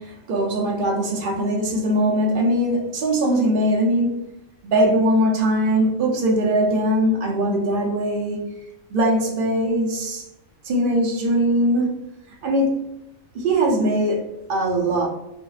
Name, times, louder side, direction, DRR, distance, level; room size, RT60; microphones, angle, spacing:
voice 1, 0.0-4.2 4.6-8.4 8.9-10.2 10.6-11.9 12.4-12.8 13.3-15.1, right 1 dB, 55° right, 0.6 m, -21 dB
2.6 x 2.1 x 2.3 m
omnidirectional pair, 1.4 m